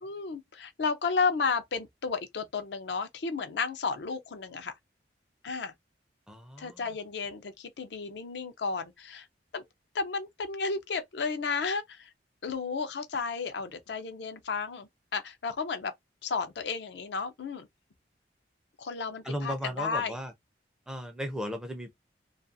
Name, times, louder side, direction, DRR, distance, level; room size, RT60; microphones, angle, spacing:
voice 1, 0.0-4.7 5.4-5.7 6.6-9.3 9.5-9.6 9.9-12.1 12.4-15.9 16.2-17.7 18.8-20.1, left 4 dB, 70° left, 0.5 m, -33 dB
voice 2, 6.3-6.9 19.2-20.3 20.9-21.9, equal, 5° right, 0.4 m, -36 dB
2.4 x 2.3 x 2.5 m
head